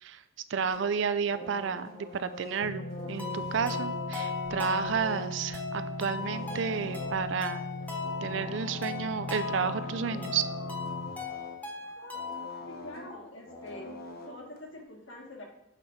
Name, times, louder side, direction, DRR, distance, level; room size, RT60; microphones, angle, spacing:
voice 1, 0.5-7.6 8.2-10.4, right 6 dB, 60° right, 12 dB, 0.4 m, -31 dB
sound 1, 0.7-14.8, left 1 dB, 45° left, 0.9 m, -45 dB
sound 2, 2.6-11.1, left 1 dB, 80° left, 0.5 m, -39 dB
sound 3, 3.2-12.6, left 4 dB, 10° left, 1.0 m, -38 dB
voice 2, 12.7-15.5, left 1 dB, 60° left, 0 dB, 1.3 m, -45 dB
6.7 x 4.0 x 4.6 m, 0.81 s
head